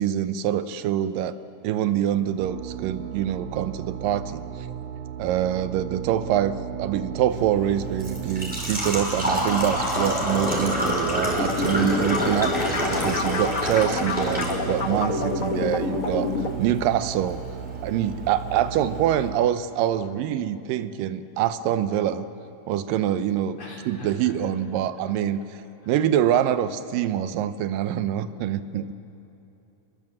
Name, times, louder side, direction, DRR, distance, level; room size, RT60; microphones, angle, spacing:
voice 1, 0.0-1.4 1.6-4.4 5.2-12.5 12.9-17.4 17.8-22.3 22.7-23.6 23.9-25.4 25.9-28.9, right 10 dB, 85° right, 12 dB, 2.5 m, -25 dB
sound 1, 2.4-19.4, right 9 dB, 70° right, 2.3 m, -35 dB
Engine / Trickle dribble / Fill (with liquid), 7.3-19.3, equal, 5° right, 4.0 m, -29 dB
sound 2, 11.4-16.5, left 3 dB, 85° left, 0.7 m, -28 dB
voice 2, 23.6-24.3, left 2 dB, 50° left, -3 dB, 4.1 m, -42 dB
28.0 x 21.5 x 7.7 m, 2.9 s
omnidirectional pair, 3.8 m